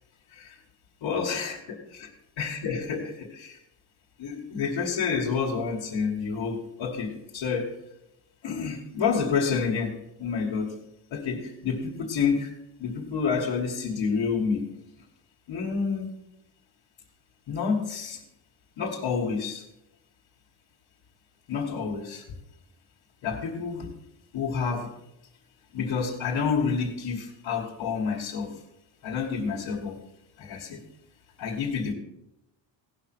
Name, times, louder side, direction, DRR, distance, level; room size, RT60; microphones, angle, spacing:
voice 1, 1.0-2.1 2.4-3.6 4.2-7.7 8.4-10.8 11.1-12.5 12.8-14.7 15.5-16.1 17.5-18.2 18.8-19.6 21.5-22.2 23.2-23.9 24.3-24.9 25.7-28.6 29.0-30.0 30.4-30.8 31.4-31.9, left 5 dB, 75° left, -3 dB, 2.0 m, -29 dB
17.0 x 5.8 x 6.1 m, 0.85 s
cardioid pair, 155°, 45 cm